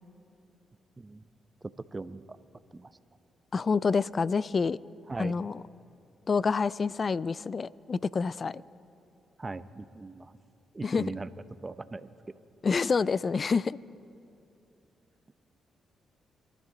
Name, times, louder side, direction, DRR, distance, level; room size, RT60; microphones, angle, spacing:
voice 1, 1.0-1.3 1.6-2.4 2.7-2.9 5.1-5.3 9.4-10.3 10.7-11.3 11.6-12.1, right 3 dB, 30° right, 14 dB, 0.7 m, -39 dB
voice 2, 3.5-4.8 5.2-5.6 6.3-8.6 10.8-11.0 12.6-13.8, left 5 dB, 45° left, 21 dB, 0.3 m, -27 dB
24.5 x 12.5 x 3.9 m, 2.6 s
supercardioid pair, 50°, 0 cm